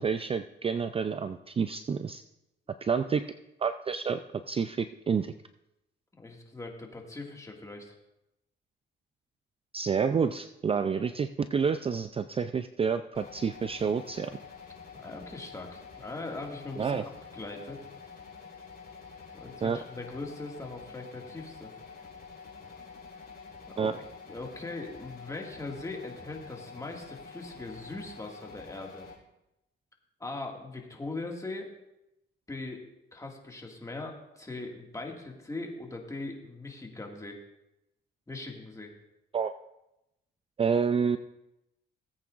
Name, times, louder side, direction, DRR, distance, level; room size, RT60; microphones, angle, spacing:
voice 1, 0.0-2.2 2.8-3.2 3.6-4.2 4.5-5.3 9.7-14.4 16.8-17.0 19.6-19.8 23.8-23.9 39.3-39.5 40.6-41.2, right 6 dB, 30° right, 10 dB, 0.4 m, -29 dB
voice 2, 6.1-7.9 15.0-17.0 17.3-17.8 19.3-21.7 23.7-23.9 24.3-29.1 30.2-31.7 32.5-32.9 33.1-37.4 38.3-38.9, left 2 dB, 15° left, 1 dB, 2.0 m, -40 dB
sound 1, 13.1-29.1, left 5 dB, 45° left, 2.9 m, -48 dB
18.0 x 8.4 x 2.5 m, 0.88 s
cardioid pair, 90°, 20 cm